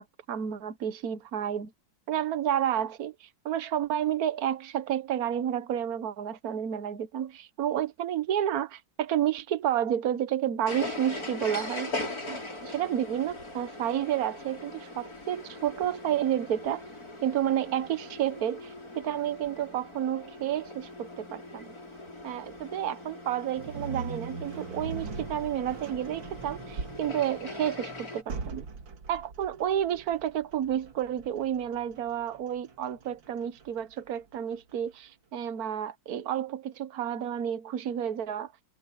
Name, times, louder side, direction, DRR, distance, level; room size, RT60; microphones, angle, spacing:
voice 1, 0.0-1.7 2.1-11.9 12.3-16.8 17.2-21.7 22.2-28.6 29.1-38.5, right 10 dB, 55° right, 1.5 m, -30 dB
sound 1, 10.7-28.2, left 2 dB, 50° left, 6.9 m, -41 dB
sound 2, 23.6-34.7, right 4 dB, 85° right, 2.7 m, -41 dB
omnidirectional pair, 2.0 m